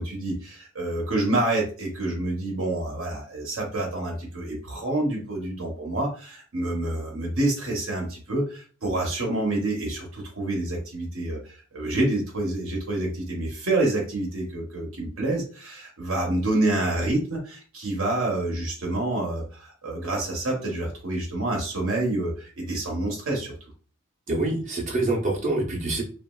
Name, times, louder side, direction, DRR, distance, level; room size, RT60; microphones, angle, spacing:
voice 1, 0.0-23.5, right 2 dB, 65° right, -1 dB, 0.9 m, -27 dB
voice 2, 24.3-26.0, right 2 dB, 35° right, -2 dB, 0.8 m, -25 dB
3.0 x 2.4 x 2.3 m, 0.39 s
head